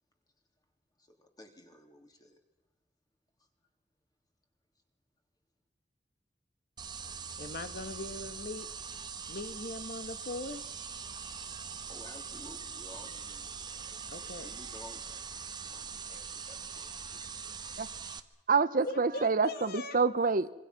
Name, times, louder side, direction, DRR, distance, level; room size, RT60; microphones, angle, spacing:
voice 1, 1.0-2.4 11.9-17.6, left 1 dB, 20° left, 3.3 m, -54 dB
sound 1, 6.8-18.2, right 6 dB, 25° right, 1.1 m, -42 dB
voice 2, 7.4-8.7 9.3-10.6 14.1-14.5 18.8-20.0, left 2 dB, 55° left, 1.4 m, -40 dB
voice 3, 18.5-20.5, right 4 dB, 50° right, 0.9 m, -27 dB
26.0 x 24.5 x 5.9 m
head